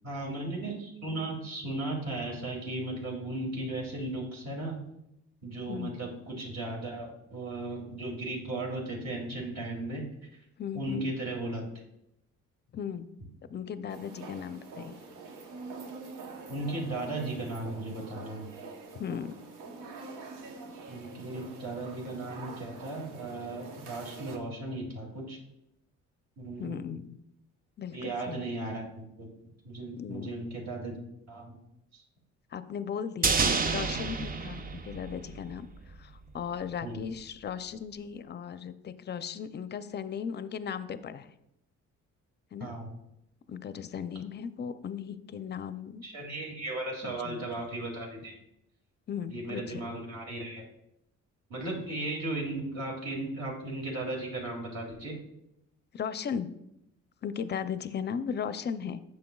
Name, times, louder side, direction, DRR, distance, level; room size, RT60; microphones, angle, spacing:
voice 1, 0.0-4.7 5.4-10.0 10.7-11.6 16.5-18.5 20.9-25.4 26.4-26.8 27.9-29.3 29.6-31.0 31.3-31.5 31.9-32.0 36.8-37.0 42.6-42.9 46.0-48.4 49.3-50.6 51.5-55.1, right 2 dB, 60° right, -2 dB, 2.5 m, -36 dB
voice 2, 5.7-6.0 10.6-11.1 12.7-13.1 13.5-15.0 18.9-19.3 26.6-27.2 27.8-28.4 30.0-30.3 32.5-41.3 42.5-42.7 43.5-46.0 47.0-47.4 49.1-49.8 55.9-56.5 57.2-59.0, left 7 dB, 35° left, 12 dB, 0.5 m, -37 dB
sound 1, 13.9-24.4, right 3 dB, 90° right, 1.0 m, -45 dB
sound 2, 33.2-35.6 35.9-36.0, right 4 dB, 30° right, 0.6 m, -29 dB
9.3 x 6.4 x 2.3 m, 0.82 s
cardioid pair, 90°, 30 cm